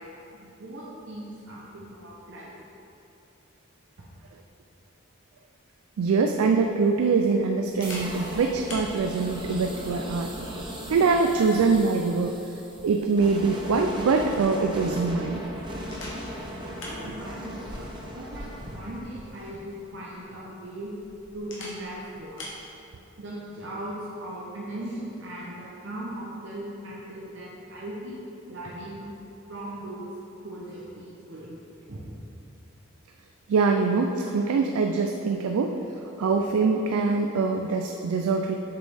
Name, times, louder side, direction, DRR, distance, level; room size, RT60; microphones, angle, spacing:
voice 1, 0.0-2.5 11.3-11.4 16.1-16.5 16.8-20.9 21.3-22.4 23.1-28.2 28.5-29.1 29.5-30.1 30.4-31.6 31.9-32.1, right 1 dB, 55° right, -6 dB, 0.7 m, -39 dB
Camera, 5.9-22.6, left 1 dB, 65° left, 1.3 m, -46 dB
voice 2, 6.0-10.3 10.9-12.4 12.8-15.4 33.5-35.8 36.2-38.5, right 4 dB, 85° right, 4 dB, 0.3 m, -23 dB
sound 1, 7.8-19.6, equal, 20° right, 0.7 m, -38 dB
7.4 x 5.2 x 3.4 m, 2.9 s
head